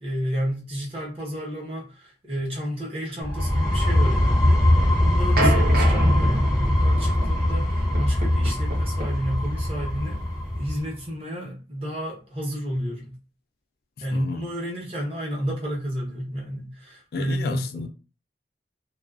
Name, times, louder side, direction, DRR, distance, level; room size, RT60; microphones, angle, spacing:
voice 1, 0.0-10.3 10.6-13.2 14.0-17.9, equal, 35° right, 0.9 m, -31 dB
sound 1, 3.2-10.8, left 1 dB, 5° right, 0.6 m, -21 dB
sound 2, 5.4-10.8, right 1 dB, 55° right, 0.6 m, -28 dB
voice 2, 14.1-14.5 17.1-17.9, left 4 dB, 60° left, 0.4 m, -32 dB
2.3 x 2.3 x 2.4 m
head